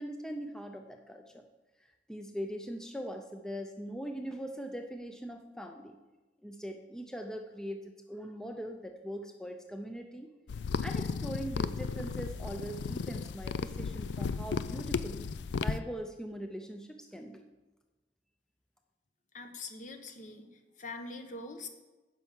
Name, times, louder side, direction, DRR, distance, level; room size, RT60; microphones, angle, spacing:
voice 1, 0.0-1.4 2.1-6.0 6.4-10.3 10.8-15.3 15.6-17.4, equal, 5° left, 4 dB, 0.5 m, -41 dB
sound 1, 10.5-15.8, left 5 dB, 90° left, 0.4 m, -34 dB
voice 2, 19.3-21.7, left 3 dB, 45° left, 6 dB, 1.0 m, -43 dB
10.0 x 5.5 x 7.3 m, 1.2 s
head